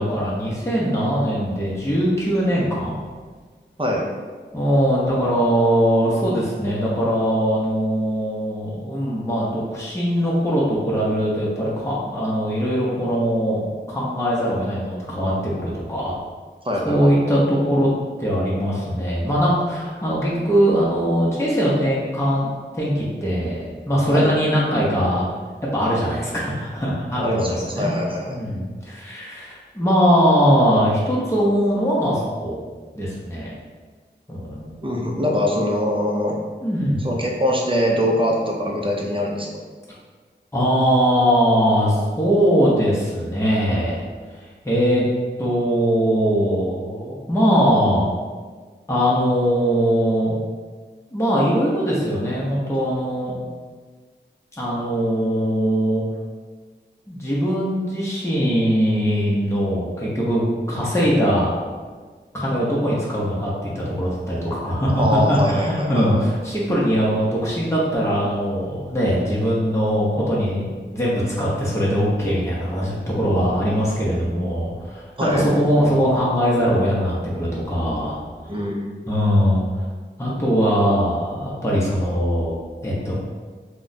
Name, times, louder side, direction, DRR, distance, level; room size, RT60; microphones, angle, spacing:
voice 1, 0.0-2.9 4.5-16.1 16.8-17.9 18.2-25.2 25.7-27.9 28.3-32.6 32.9-33.5 34.3-34.7 36.6-37.0 40.5-44.0 44.6-45.0 45.4-48.1 48.9-50.4 51.1-53.4 54.6-56.0 57.1-61.5 62.3-78.2 79.1-79.7 80.2-82.6 82.8-83.1, equal, 15° left, -6 dB, 0.7 m, -21 dB
voice 2, 16.6-17.1 24.1-24.3 27.2-28.5 34.8-36.4 37.0-39.5 65.0-66.3 75.2-75.4 78.5-78.9, equal, 25° right, -1 dB, 0.6 m, -23 dB
2.4 x 2.2 x 3.9 m, 1.5 s
wide cardioid pair, 40°, 20 cm